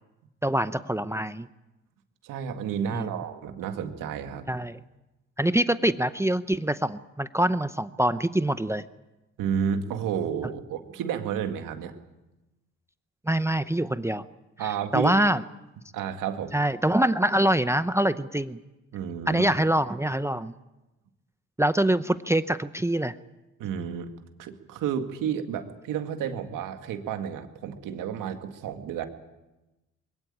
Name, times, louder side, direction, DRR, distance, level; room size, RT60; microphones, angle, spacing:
voice 1, 0.4-1.5 2.9-3.1 4.5-4.8 5.4-8.8 13.3-14.2 14.9-15.4 16.5-18.6 19.3-20.5 21.6-23.1, right 1 dB, 10° right, 13 dB, 0.7 m, -24 dB
voice 2, 2.2-4.5 9.4-11.9 14.6-15.1 15.9-16.5 18.9-19.5 23.6-24.1 24.4-29.0, right 8 dB, 85° right, 6 dB, 2.1 m, -31 dB
22.0 x 17.5 x 8.7 m, 1.0 s
cardioid pair, 75°, 31 cm